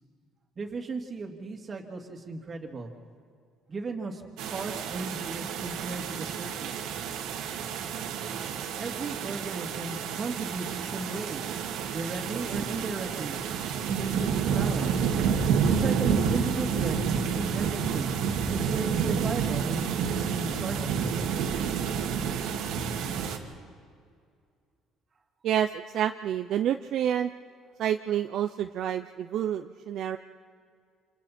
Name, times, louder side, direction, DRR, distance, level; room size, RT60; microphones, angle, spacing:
voice 1, 0.6-2.9 3.7-4.2 4.5-6.7 8.8-11.4 11.9-13.4 13.9-15.1 15.7-18.1 18.5-21.1, right 3 dB, 30° right, 2 dB, 2.6 m, -35 dB
sound 1, 4.4-23.4, right 7 dB, 80° right, 2.2 m, -29 dB
voice 2, 25.4-27.3 27.8-30.2, right 10 dB, 55° right, 7 dB, 0.6 m, -28 dB
28.0 x 28.0 x 4.4 m, 2.2 s
cardioid pair, 135°, 0 cm